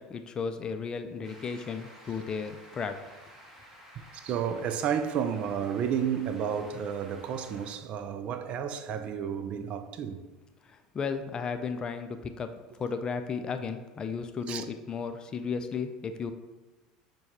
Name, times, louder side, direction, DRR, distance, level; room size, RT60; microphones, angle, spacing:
voice 1, 0.0-3.0 10.7-12.5 12.8-16.3, left 5 dB, 30° left, 0.3 m, -34 dB
sound 1, 1.2-7.7, equal, 15° right, 1.1 m, -52 dB
voice 2, 4.1-10.2 14.5-14.7, right 8 dB, 50° right, 0.3 m, -31 dB
6.3 x 2.3 x 2.8 m
hypercardioid pair, 85°, 3 cm